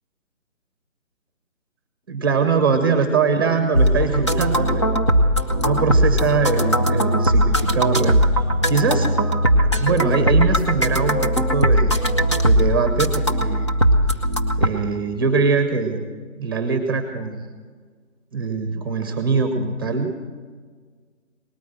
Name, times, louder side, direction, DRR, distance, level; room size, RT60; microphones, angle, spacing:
voice 1, 2.1-5.0 5.6-8.2 8.7-9.1 9.5-12.1 12.4-13.7 14.6-16.0 16.4-17.5 18.3-20.1, right 5 dB, 15° right, 6 dB, 1.0 m, -22 dB
sound 1, 3.7-14.7, equal, 25° left, 0.6 m, -19 dB
19.0 x 9.3 x 7.7 m, 1.5 s
figure-of-eight pair, 165°, 39 cm